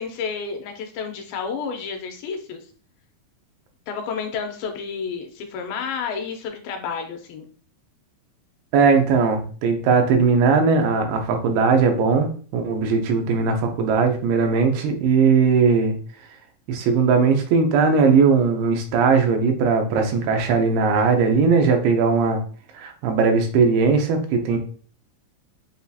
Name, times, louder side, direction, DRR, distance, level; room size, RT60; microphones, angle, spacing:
voice 1, 0.0-2.6 3.9-7.4, left 6 dB, 80° left, 4 dB, 2.4 m, -30 dB
voice 2, 8.7-12.3 12.5-15.9 16.7-22.4 22.8-24.6, right 5 dB, 90° right, 4 dB, 2.6 m, -19 dB
7.0 x 2.7 x 2.3 m, 0.43 s
omnidirectional pair, 4.4 m